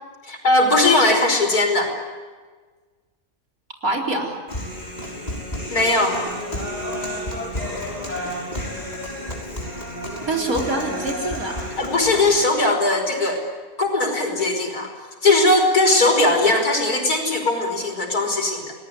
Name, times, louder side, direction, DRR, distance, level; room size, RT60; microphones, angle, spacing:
voice 1, 0.2-1.9 5.7-6.2 11.8-13.4 13.8-14.9 15.2-18.7, left 2 dB, 85° left, 3 dB, 5.7 m, -19 dB
voice 2, 3.8-4.4 10.2-11.8, right 2 dB, 70° right, 0 dB, 4.6 m, -25 dB
Human voice, 4.5-12.5, left 1 dB, 30° left, 6.5 m, -30 dB
29.5 x 19.5 x 9.9 m, 1.4 s
omnidirectional pair, 1.6 m